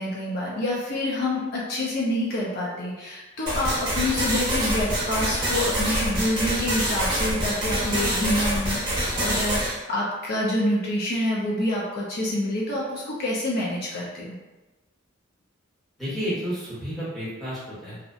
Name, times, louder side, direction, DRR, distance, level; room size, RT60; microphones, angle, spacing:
voice 1, 0.0-14.4, left 1 dB, 50° left, -6 dB, 0.5 m, -27 dB
sound 1, 3.5-9.7, right 1 dB, 25° right, 0.8 m, -26 dB
voice 2, 16.0-18.0, equal, ahead, -11 dB, 1.0 m, -31 dB
2.7 x 2.1 x 2.4 m, 1.2 s
head